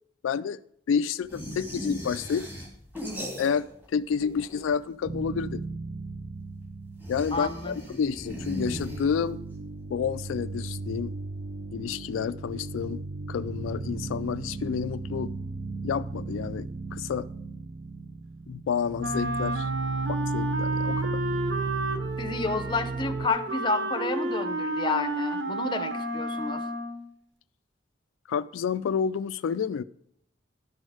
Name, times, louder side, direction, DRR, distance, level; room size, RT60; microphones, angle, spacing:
voice 1, 0.2-0.6 0.9-2.5 3.4-5.6 7.1-9.4 9.9-11.1 11.7-13.0 13.3-15.3 15.8-17.3 18.5-19.7 20.1-21.2 28.3-29.8, left 6 dB, 90° left, 0.3 m, -29 dB
sound 1, 1.3-5.0 6.9-9.5, left 1 dB, 10° right, 1.9 m, -38 dB
sound 2, 5.0-7.9 8.2-23.3, right 3 dB, 35° right, 0.5 m, -35 dB
voice 2, 7.3-7.8 22.2-26.6, left 3 dB, 25° left, 0.6 m, -30 dB
Wind instrument woodwind instrument, 19.0-27.1, right 1 dB, 70° right, 1.0 m, -31 dB
11.0 x 6.3 x 4.9 m
head